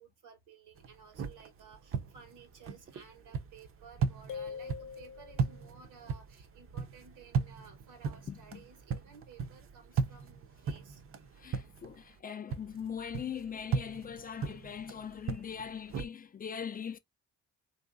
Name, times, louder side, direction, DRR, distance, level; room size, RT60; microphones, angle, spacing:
voice 1, 0.0-11.0, right 6 dB, 85° right, 1.3 m, -56 dB
sound 1, 0.8-12.2 12.5-16.1, right 5 dB, 45° right, 0.6 m, -38 dB
sound 2, 4.3-5.8, left 7 dB, 80° left, 0.6 m, -43 dB
voice 2, 8.3-8.6 11.4-17.0, left 7 dB, 30° left, 0.4 m, -41 dB
3.0 x 2.7 x 2.5 m
cardioid pair, 90°, 30 cm